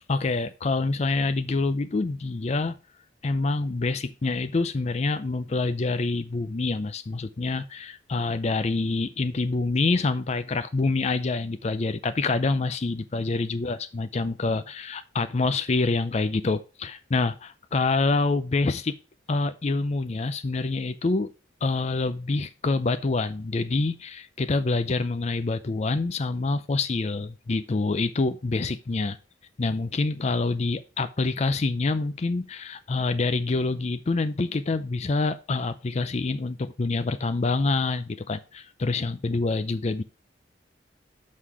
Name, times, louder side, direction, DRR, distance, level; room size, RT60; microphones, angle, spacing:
voice 1, 0.1-2.8 3.2-18.9 19.3-21.3 21.6-29.2 29.6-40.0, left 3 dB, 35° left, 0.4 m, -26 dB
6.4 x 5.7 x 4.7 m
head